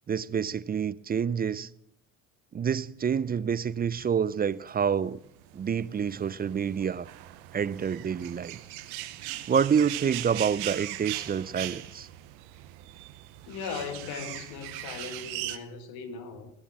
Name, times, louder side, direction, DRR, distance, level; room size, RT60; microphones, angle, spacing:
voice 1, 0.1-1.7 2.5-5.2 5.5-7.1 7.5-8.6 9.5-12.1, right 7 dB, 25° right, 0.5 m, -28 dB
sound 1, 4.5-15.6, right 15 dB, 75° right, 0.9 m, -40 dB
voice 2, 13.5-16.5, left 6 dB, 70° left, 1.8 m, -38 dB
18.0 x 7.1 x 7.5 m
hypercardioid pair, 60°, 37 cm